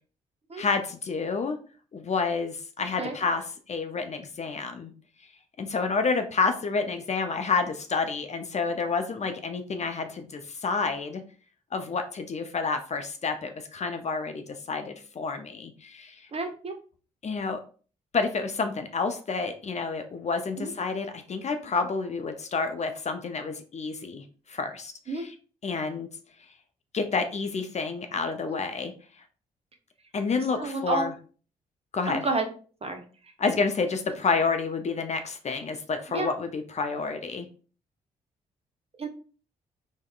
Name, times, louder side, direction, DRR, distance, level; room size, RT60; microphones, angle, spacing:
voice 1, 0.6-1.6 1.9-4.9 5.6-11.2 11.7-16.3 17.2-17.6 18.1-25.3 25.6-26.1 26.9-28.9 30.1-31.1 31.9-32.2 33.4-37.5, left 4 dB, 35° left, 7 dB, 0.5 m, -29 dB
voice 2, 16.3-16.7 20.6-20.7 25.1-25.2 28.5-28.6 30.4-31.1 32.1-32.5 32.8-33.0 36.1-36.3 39.0-39.1, right 3 dB, 30° right, 5 dB, 0.7 m, -30 dB
3.5 x 2.1 x 2.3 m, 0.39 s
hypercardioid pair, 40°, 19 cm